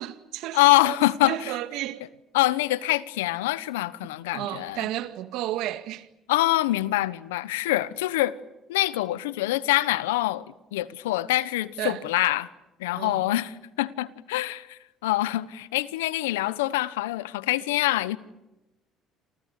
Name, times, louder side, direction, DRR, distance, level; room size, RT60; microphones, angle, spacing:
voice 1, 0.0-1.0 1.2-2.0 4.3-6.1 11.8-12.0 13.0-13.2, right 14 dB, 70° right, 2.1 m, -32 dB
voice 2, 0.5-1.5 2.3-4.9 6.3-8.4 8.7-10.4 10.7-12.5 12.8-18.2, left 17 dB, 90° left, 1.2 m, -25 dB
29.0 x 27.5 x 6.8 m
hypercardioid pair, 65°, 0 cm